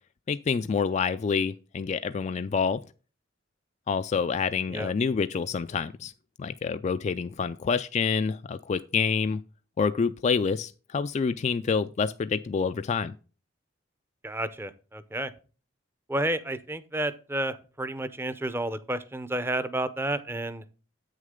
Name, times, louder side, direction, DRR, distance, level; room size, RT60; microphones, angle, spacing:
voice 1, 0.3-2.8 3.9-6.1 6.4-9.4 9.8-13.1, left 5 dB, 35° left, 0.3 m, -27 dB
voice 2, 14.2-15.3 16.1-20.6, right 1 dB, 10° right, 0.6 m, -31 dB
8.4 x 6.4 x 3.6 m
head